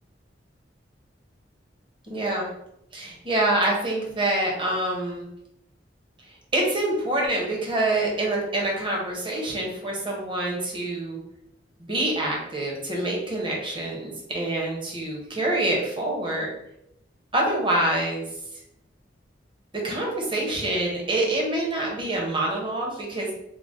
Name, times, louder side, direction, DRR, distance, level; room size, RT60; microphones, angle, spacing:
voice 1, 2.1-2.5 2.9-5.3 6.5-11.2 11.9-16.5 17.3-18.2 19.8-23.3, right 1 dB, 25° right, -2 dB, 0.9 m, -26 dB
3.8 x 2.1 x 3.7 m, 0.79 s
head